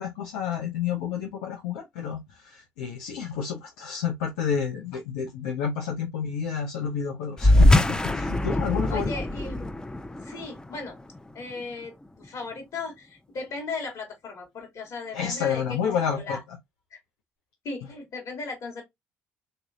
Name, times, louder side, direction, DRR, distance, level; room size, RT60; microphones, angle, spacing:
voice 1, 0.0-9.1 15.1-16.4, left 7 dB, 85° left, 0.8 m, -30 dB
sound 1, 7.4-12.3, left 1 dB, 10° left, 0.5 m, -23 dB
voice 2, 8.9-9.8 10.2-11.0 11.3-16.4 16.9-17.0 17.6-18.8, left 3 dB, 60° left, 2.8 m, -37 dB
4.1 x 3.4 x 2.6 m
hypercardioid pair, 60°, 6 cm